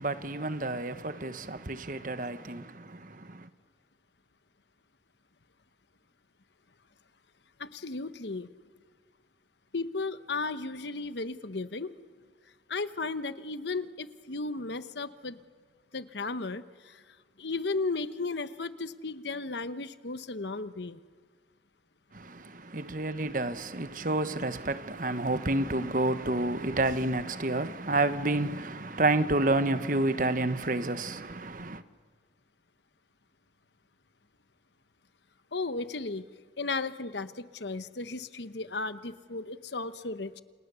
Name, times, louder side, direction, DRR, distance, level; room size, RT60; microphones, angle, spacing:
voice 1, 0.0-3.5 22.1-31.8, right 2 dB, 45° right, 1.2 m, -29 dB
voice 2, 7.6-8.5 9.7-11.9 12.7-15.4 15.9-17.0 17.4-21.0 35.5-36.3 36.6-40.4, left 3 dB, 70° left, 1.0 m, -35 dB
29.0 x 29.0 x 6.9 m
head